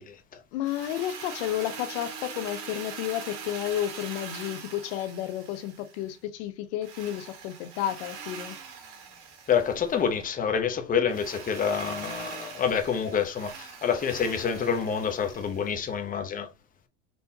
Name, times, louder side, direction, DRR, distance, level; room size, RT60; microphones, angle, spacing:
voice 1, 0.5-8.6, left 12 dB, 65° left, 0.7 m, -32 dB
Drill, 0.6-6.2 6.8-10.1 11.1-15.9, right 6 dB, 60° right, 2.1 m, -42 dB
voice 2, 9.5-16.5, left 7 dB, 25° left, 0.8 m, -27 dB
4.3 x 3.4 x 2.8 m
supercardioid pair, 105°, 36 cm